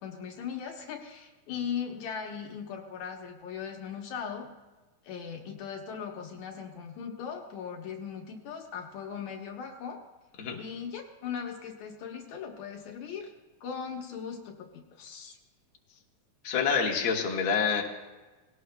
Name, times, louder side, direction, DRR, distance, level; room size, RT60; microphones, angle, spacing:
voice 1, 0.0-4.5 5.0-10.0 10.6-13.3 13.6-15.4, left 7 dB, 75° left, 2 dB, 2.4 m, -39 dB
voice 2, 16.4-17.8, left 6 dB, 50° left, -1 dB, 2.0 m, -27 dB
20.5 x 17.0 x 2.3 m, 1.2 s
omnidirectional pair, 3.4 m